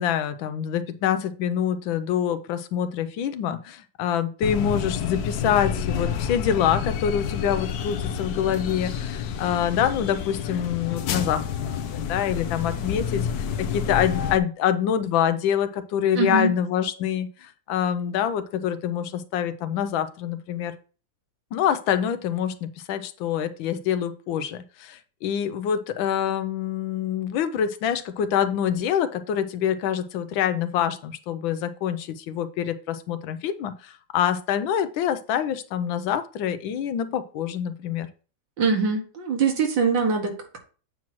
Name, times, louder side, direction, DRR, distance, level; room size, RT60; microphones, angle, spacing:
voice 1, 0.0-13.3 13.6-20.7 21.5-38.1, left 9 dB, 90° left, 11 dB, 1.4 m, -26 dB
sound 1, 4.4-14.4, left 7 dB, 65° left, 1.0 m, -29 dB
voice 2, 16.1-16.5 38.6-40.6, right 4 dB, 75° right, 3 dB, 2.2 m, -23 dB
8.5 x 3.0 x 5.9 m, 0.37 s
omnidirectional pair, 2.1 m